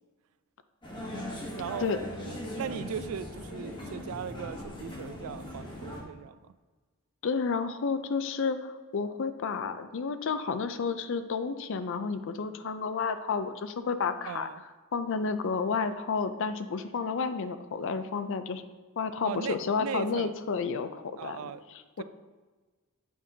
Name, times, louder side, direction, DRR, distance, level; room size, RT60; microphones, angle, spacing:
sound 1, 0.8-6.0, left 1 dB, 20° left, 1.0 m, -39 dB
voice 1, 1.5-1.9 2.2-6.5 14.2-14.6 19.2-20.3 21.2-21.6, right 7 dB, 70° right, 14 dB, 0.3 m, -38 dB
voice 2, 7.2-14.5 14.9-18.6 19.0-22.0, left 5 dB, 60° left, 10 dB, 0.4 m, -31 dB
8.5 x 5.3 x 2.7 m, 1.3 s
head